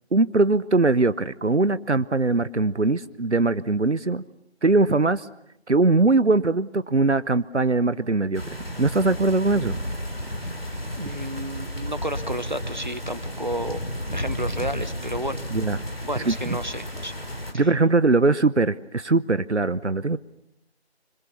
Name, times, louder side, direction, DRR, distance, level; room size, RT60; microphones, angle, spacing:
voice 1, 0.1-4.2 4.6-5.3 5.7-9.8 15.5-15.8 16.2-16.6 17.5-20.2, right 3 dB, 85° right, 16 dB, 1.0 m, -21 dB
sound 1, 8.3-17.5, equal, 60° left, 3.4 m, -32 dB
voice 2, 11.0-13.8 14.1-15.4 16.0-17.1 17.5-17.7, right 1 dB, 40° right, 13 dB, 1.3 m, -31 dB
26.0 x 26.0 x 7.1 m, 0.79 s
figure-of-eight pair, 175°, 34 cm